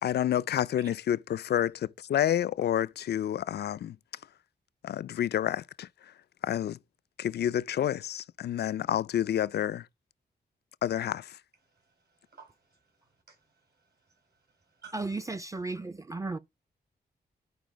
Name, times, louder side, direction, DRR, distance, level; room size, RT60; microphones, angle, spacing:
voice 1, 0.0-4.0 4.8-5.9 6.4-6.8 7.2-9.8 10.8-11.3, left 10 dB, 75° left, 0.4 m, -29 dB
voice 2, 11.7-15.1, right 5 dB, 70° right, 5.4 m, -56 dB
voice 3, 14.9-16.4, right 3 dB, 20° right, 0.5 m, -34 dB
11.0 x 4.6 x 5.0 m
cardioid pair, 80°, 17 cm